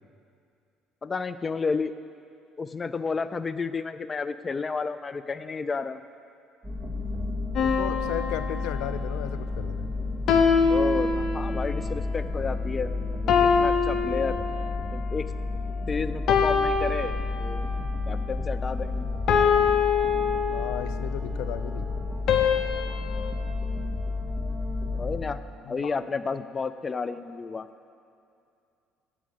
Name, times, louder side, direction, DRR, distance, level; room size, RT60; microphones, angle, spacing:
voice 1, 1.0-1.9 2.6-6.0 10.7-12.9 13.2-14.4 14.9-15.3 15.9-17.6 18.1-19.1 24.9-25.4 25.7-27.7, left 4 dB, 25° left, 13 dB, 0.3 m, -31 dB
sound 1, 6.6-25.2, left 3 dB, 5° right, 2.0 m, -31 dB
voice 2, 7.6-9.9 20.5-21.9 25.6-26.0, left 12 dB, 90° left, 12 dB, 0.4 m, -35 dB
sound 2, 7.6-9.2 10.3-11.8 13.3-15.0 16.3-17.8 19.3-21.0 22.3-23.3, left 6 dB, 55° left, 0.8 m, -24 dB
8.4 x 6.2 x 7.7 m, 2.5 s
cardioid pair, 130°, 0 cm